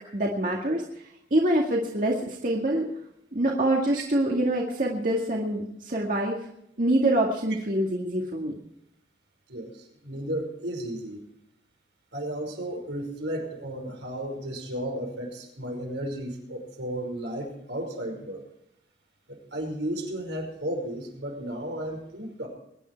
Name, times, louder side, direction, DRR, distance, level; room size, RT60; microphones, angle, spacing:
voice 1, 0.1-0.8 1.3-2.9 3.3-6.4 6.8-8.5, right 1 dB, 50° right, -1 dB, 2.0 m, -25 dB
voice 2, 9.5-11.2 12.1-18.4 19.3-22.5, right 1 dB, 85° right, 2 dB, 5.4 m, -34 dB
22.5 x 10.5 x 4.6 m, 0.78 s
head